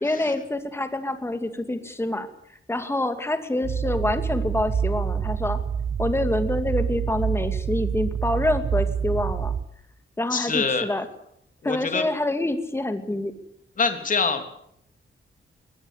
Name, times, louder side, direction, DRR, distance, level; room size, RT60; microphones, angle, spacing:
voice 1, 0.0-2.3 2.7-5.6 6.0-9.5 10.2-11.1 11.6-13.3, left 1 dB, 10° left, 8 dB, 2.4 m, -26 dB
sound 1, 3.6-9.6, right 7 dB, 40° right, 0.9 m, -27 dB
voice 2, 10.3-10.9 11.6-12.0 13.8-14.5, left 4 dB, 40° left, 7 dB, 3.3 m, -25 dB
22.5 x 18.5 x 8.2 m, 0.72 s
wide cardioid pair, 155°, 21 cm